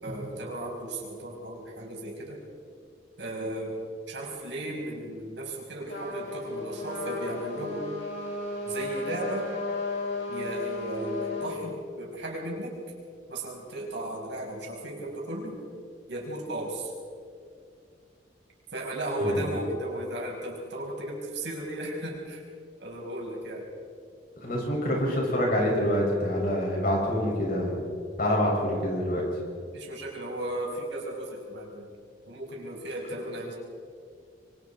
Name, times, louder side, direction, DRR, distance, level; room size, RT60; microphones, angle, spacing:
voice 1, 0.0-2.4 3.2-3.8 4.1-7.9 8.7-9.5 10.3-12.8 13.3-15.6 16.1-16.9 18.7-22.4 22.8-23.7 29.7-31.9 32.3-33.5, right 1 dB, 70° right, -1 dB, 5.4 m, -35 dB
Trumpet, 5.9-11.5, left 2 dB, 65° left, 7.1 m, -34 dB
voice 2, 24.4-27.8 28.2-29.3, equal, 50° left, -2 dB, 7.0 m, -26 dB
26.0 x 24.5 x 4.7 m, 2.3 s
head